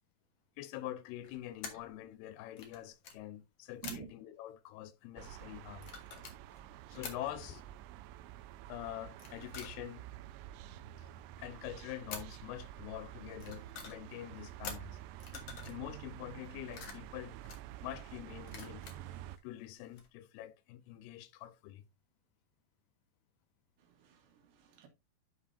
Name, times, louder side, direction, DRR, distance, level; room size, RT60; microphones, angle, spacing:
voice 1, 0.6-5.9 6.9-7.6 8.7-10.0 11.0-11.1 11.4-15.0 15.6-17.4 17.8-18.9 19.4-21.8, left 13 dB, 85° left, 2.6 m, -45 dB
sound 1, 1.2-1.9 2.5-3.2 3.8-4.2 5.7-7.2 9.1-10.1 12.1-12.4 13.2-14.1 14.6-15.8 16.3-17.8 18.5-19.4 19.7-20.1, left 6 dB, 60° left, 1.6 m, -48 dB
sound 2, 5.2-19.4, right 13 dB, 90° right, 2.6 m, -49 dB
voice 2, 23.8-24.9, right 10 dB, 70° right, 3.3 m, -49 dB
11.0 x 4.9 x 2.6 m
omnidirectional pair, 4.6 m